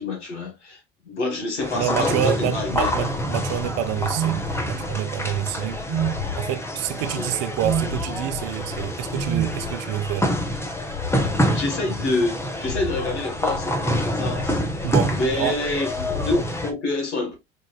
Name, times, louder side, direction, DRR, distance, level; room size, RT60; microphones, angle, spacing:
voice 1, 0.0-2.9 5.5-5.7 7.1-7.3 11.5-14.6 15.1-17.4, left 2 dB, 90° left, 1.4 m, -27 dB
sound 1, 1.6-16.7, equal, 10° left, 0.7 m, -27 dB
voice 2, 1.7-6.1 6.3-10.3 14.8-15.6, right 12 dB, 50° right, 0.6 m, -27 dB
sound 2, 2.6-6.4 6.8-11.4 11.8-12.3 12.6-16.4, left 5 dB, 60° left, 0.5 m, -36 dB
sound 3, 4.1-4.4 5.9-6.2 7.6-7.9 9.3-9.6, right 11 dB, 80° right, 0.8 m, -24 dB
4.6 x 2.5 x 2.3 m
hypercardioid pair, 80°, 34 cm